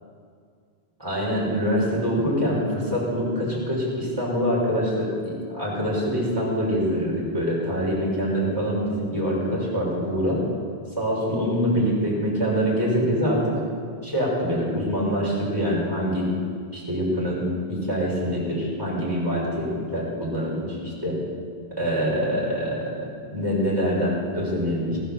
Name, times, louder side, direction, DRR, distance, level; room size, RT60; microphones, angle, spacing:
voice 1, 1.0-10.4 11.0-13.6 14.0-16.3 16.7-17.4 17.7-21.2 21.8-25.0, equal, 25° right, -6 dB, 5.7 m, -25 dB
19.0 x 10.0 x 7.5 m, 2.1 s
omnidirectional pair, 1.0 m